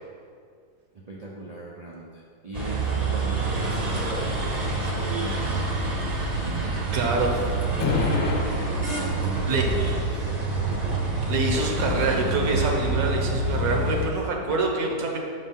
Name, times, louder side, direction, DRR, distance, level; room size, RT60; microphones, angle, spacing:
voice 1, 0.9-5.8 6.4-8.3 8.9-10.2, right 2 dB, 90° right, -5 dB, 0.3 m, -39 dB
sound 1, 2.5-14.1, right 3 dB, 35° right, 0.7 m, -27 dB
voice 2, 6.5-7.4 9.5-9.6 11.3-15.2, right 3 dB, 70° right, 1 dB, 1.3 m, -26 dB
sound 2, 7.8-14.6, left 3 dB, 50° left, 1.1 m, -32 dB
6.2 x 4.0 x 5.4 m, 2.2 s
omnidirectional pair, 1.7 m